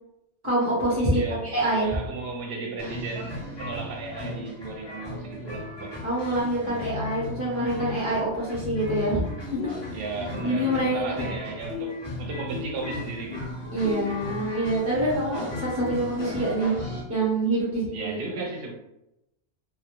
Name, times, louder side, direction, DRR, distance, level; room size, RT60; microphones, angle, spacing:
voice 1, 0.4-1.2 1.5-2.0 6.0-9.2 9.9-10.0 10.4-11.1 13.7-16.8 17.1-18.2, right 1 dB, 15° right, -7 dB, 0.5 m, -26 dB
voice 2, 1.0-6.0 9.9-13.5 17.9-18.7, right 3 dB, 65° right, 1 dB, 0.8 m, -35 dB
sound 1, 2.8-17.0, left 2 dB, 30° left, 0.6 m, -36 dB
sound 2, 7.5-7.7 9.0-9.3 9.6-11.4 11.7-15.2, left 5 dB, 75° left, 0.8 m, -38 dB
2.2 x 2.0 x 2.9 m, 0.87 s
omnidirectional pair, 1.1 m